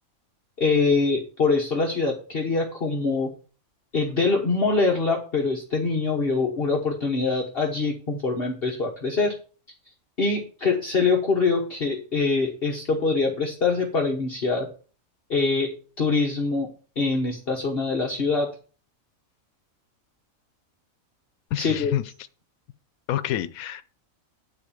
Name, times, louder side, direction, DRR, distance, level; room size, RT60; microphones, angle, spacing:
voice 1, 0.6-3.3 3.9-9.3 10.2-14.7 15.3-15.7 16.0-16.7 17.0-18.5 21.6-21.9, left 4 dB, 45° left, 1.5 m, -24 dB
voice 2, 21.5-22.0 23.1-23.8, left 12 dB, 90° left, 1.1 m, -27 dB
9.8 x 4.4 x 7.2 m
omnidirectional pair, 1.4 m